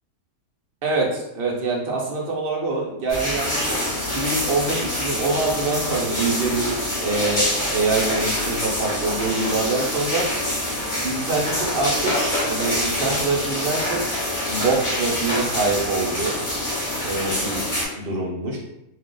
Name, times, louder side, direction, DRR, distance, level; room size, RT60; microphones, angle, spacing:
voice 1, 0.8-3.8 4.1-10.2 11.0-12.1 12.5-14.0 14.5-16.4 17.0-17.6 17.9-18.6, right 3 dB, 65° right, -2 dB, 0.6 m, -25 dB
sound 1, 3.1-17.9, left 1 dB, 35° left, 1.2 m, -25 dB
2.7 x 2.4 x 3.7 m, 0.86 s
omnidirectional pair, 1.8 m